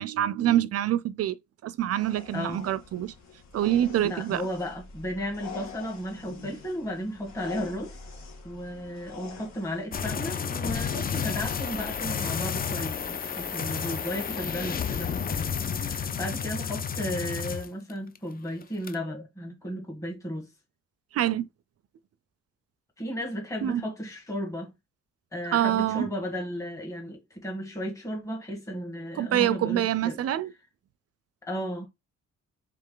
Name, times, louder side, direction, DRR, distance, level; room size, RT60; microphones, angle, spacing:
voice 1, 0.0-1.4 1.6-3.1 3.5-4.4 21.1-21.5 23.6-23.8 25.5-26.1 29.2-30.5, right 12 dB, 55° right, 0.5 m, -26 dB
sound 1, 1.9-9.9, left 5 dB, 65° left, 1.7 m, -45 dB
voice 2, 2.3-2.6 4.0-8.0 8.4-20.5 23.0-24.7 25.3-30.2 31.4-31.9, equal, 10° left, 1.5 m, -34 dB
sound 2, 9.9-18.2 18.5-18.9, left 7 dB, 30° left, 0.5 m, -31 dB
3.5 x 3.3 x 3.7 m
cardioid pair, 90°, 30 cm